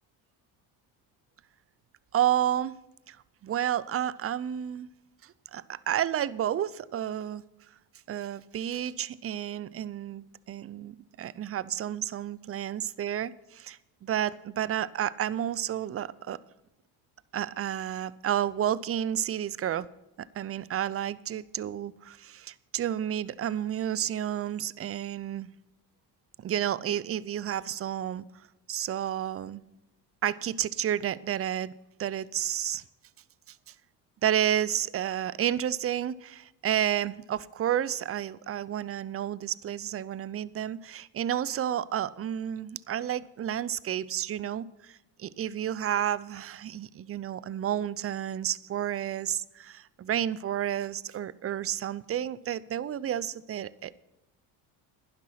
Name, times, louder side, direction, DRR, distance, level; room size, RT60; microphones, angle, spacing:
voice 1, 2.1-2.8 3.1-3.2 3.4-4.9 5.2-7.4 8.1-16.4 17.3-19.9 20.3-25.5 26.4-28.2 28.7-29.6 30.2-31.7 32.0-32.8 34.2-53.9, right 10 dB, 30° right, 20 dB, 0.5 m, -31 dB
11.5 x 10.5 x 5.8 m, 0.96 s
supercardioid pair, 75°, 47 cm